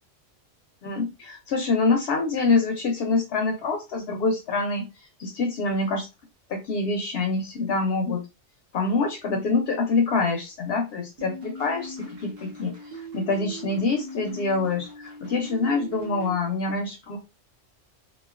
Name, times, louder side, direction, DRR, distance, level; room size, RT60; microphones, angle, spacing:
voice 1, 0.8-6.1 6.5-8.2 8.7-17.2, left 3 dB, 65° left, 3 dB, 0.8 m, -26 dB
sound 1, 11.2-16.4, right 1 dB, 55° right, 1.2 m, -40 dB
3.0 x 2.2 x 2.3 m, 0.26 s
omnidirectional pair, 1.2 m